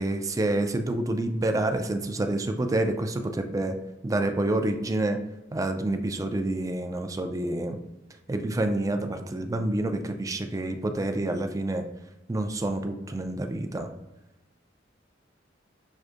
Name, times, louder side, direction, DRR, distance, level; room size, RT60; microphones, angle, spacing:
voice 1, 0.0-3.8 4.0-5.2 5.5-7.8 8.3-11.8 12.3-13.9, right 2 dB, 20° right, 6 dB, 0.3 m, -28 dB
6.2 x 2.6 x 2.5 m, 0.98 s
head